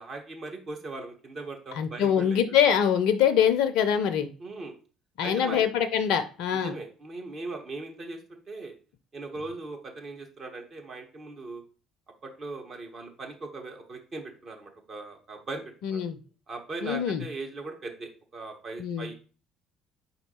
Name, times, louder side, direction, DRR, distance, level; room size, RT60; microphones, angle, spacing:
voice 1, 0.0-2.4 4.4-4.7 5.2-5.6 6.6-8.8 9.1-11.6 12.2-16.0 16.5-19.1, right 3 dB, 45° right, 3 dB, 1.2 m, -39 dB
voice 2, 1.8-4.3 5.2-6.7 15.8-16.2 16.8-17.2 18.8-19.1, left 8 dB, 65° left, 11 dB, 0.4 m, -24 dB
4.3 x 2.7 x 4.3 m, 0.37 s
figure-of-eight pair, 55°, 0 cm